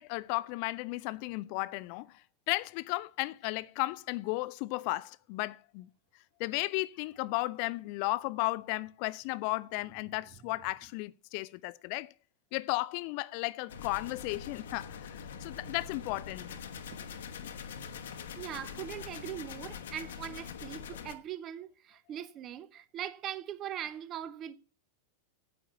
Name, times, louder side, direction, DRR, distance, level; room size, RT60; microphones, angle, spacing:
voice 1, 0.0-2.2 2.5-5.9 6.4-12.1 12.5-16.6, left 21 dB, 45° left, 0.4 m, -34 dB
sound 1, 13.7-21.2, left 6 dB, 60° left, 1.1 m, -44 dB
voice 2, 18.4-24.5, right 10 dB, 30° right, 1.0 m, -41 dB
9.3 x 8.7 x 6.9 m
figure-of-eight pair, 90°, 0 cm